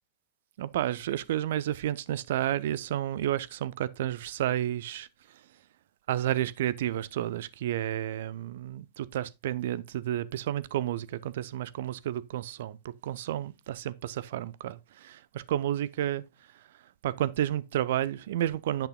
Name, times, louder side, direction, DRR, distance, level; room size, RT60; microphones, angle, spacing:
voice 1, 0.6-5.1 6.1-16.2 17.0-18.9, right 12 dB, 55° right, 0.5 m, -31 dB
10.5 x 8.4 x 2.2 m
figure-of-eight pair, 90°, 0 cm